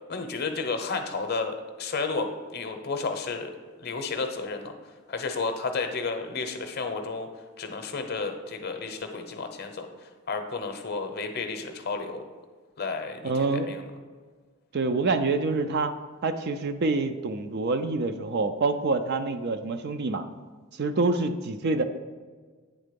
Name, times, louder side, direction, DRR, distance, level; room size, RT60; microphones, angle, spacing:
voice 1, 0.1-3.5 3.8-4.7 5.1-7.3 7.6-9.9 10.3-12.2 12.8-13.8, left 4 dB, 45° left, 6 dB, 0.7 m, -32 dB
voice 2, 13.2-13.7 14.7-15.9 16.2-20.2 20.8-21.8, right 3 dB, 50° right, 9 dB, 0.4 m, -26 dB
8.9 x 3.7 x 5.2 m, 1.5 s
head